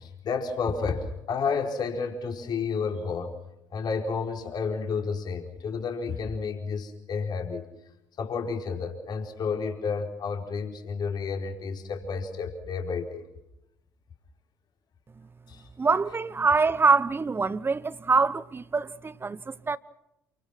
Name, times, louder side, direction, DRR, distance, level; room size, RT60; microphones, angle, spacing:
voice 1, 0.0-3.4 3.7-7.6 8.2-13.2 15.5-15.7, left 5 dB, 45° left, 4.7 m, -31 dB
voice 2, 15.8-19.8, right 4 dB, 20° right, 1.1 m, -24 dB
29.0 x 24.5 x 6.2 m
figure-of-eight pair, 55°, 10 cm